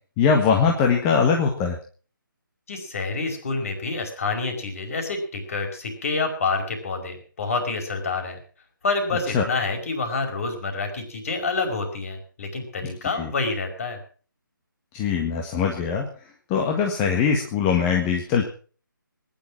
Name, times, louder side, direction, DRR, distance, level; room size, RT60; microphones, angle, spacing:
voice 1, 0.2-1.8 9.3-9.4 13.2-13.3 14.9-16.1 16.5-18.5, left 6 dB, 15° left, 2 dB, 1.7 m, -21 dB
voice 2, 2.7-8.4 8.8-14.0, left 3 dB, 40° left, 6 dB, 5.1 m, -28 dB
20.0 x 11.0 x 6.1 m, 0.41 s
figure-of-eight pair, 150°, 11 cm